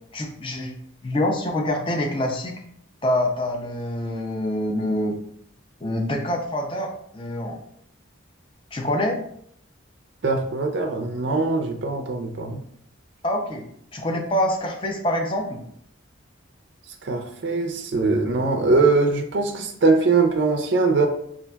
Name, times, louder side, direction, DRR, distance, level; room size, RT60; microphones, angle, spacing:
voice 1, 0.1-0.8 1.0-2.5 3.0-5.2 5.8-6.9 7.1-7.6 8.7-9.2 13.2-13.7 13.9-15.6, left 1 dB, 25° left, 1 dB, 0.5 m, -25 dB
voice 2, 10.2-12.6 17.0-21.1, right 3 dB, 55° right, 2 dB, 0.4 m, -21 dB
5.5 x 2.4 x 2.2 m, 0.68 s
head